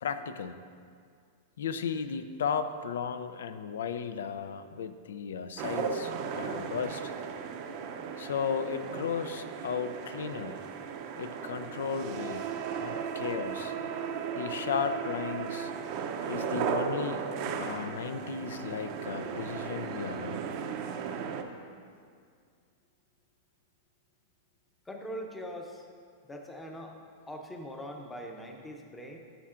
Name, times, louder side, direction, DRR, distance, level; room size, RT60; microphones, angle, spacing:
voice 1, 0.0-0.6 1.6-7.1 8.2-10.6 11.2-12.5 12.8-13.7 14.4-15.7 16.3-17.3 17.6-20.4, left 7 dB, 90° left, 11 dB, 0.4 m, -35 dB
sound 1, 5.6-21.4, right 6 dB, 45° right, 0.5 m, -36 dB
voice 2, 24.9-25.9 26.2-26.9 27.3-29.2, equal, 10° left, 2 dB, 0.6 m, -42 dB
11.5 x 5.6 x 2.5 m, 2.2 s
supercardioid pair, 150°, 0 cm